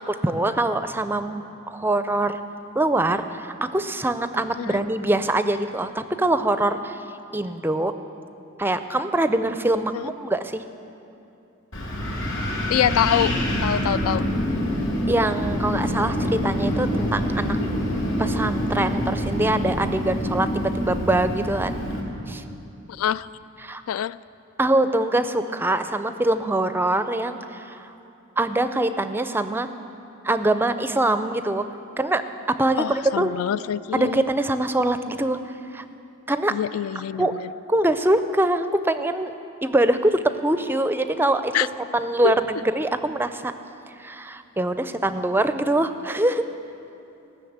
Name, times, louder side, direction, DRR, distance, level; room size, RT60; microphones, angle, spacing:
voice 1, 0.1-2.4 2.8-7.0 7.3-7.9 8.6-10.6 15.1-17.6 18.2-21.8 22.3-22.4 23.6-23.8 24.6-27.9 28.4-29.7 30.2-31.7 32.0-32.9 33.2-33.3 33.9-35.4 35.7-35.8 36.3-36.6 37.2-37.4 37.7-39.3 39.6-43.5 44.0-46.5, right 1 dB, 10° right, 10 dB, 0.4 m, -23 dB
Wind, 11.7-22.0, equal, 65° left, 3.1 m, -26 dB
voice 2, 12.7-14.3 22.9-23.3 23.9-24.2 32.8-34.2 36.5-37.5 41.5-41.7 42.2-42.4, left 10 dB, 80° left, 17 dB, 0.3 m, -25 dB
18.0 x 6.5 x 7.9 m, 2.7 s
head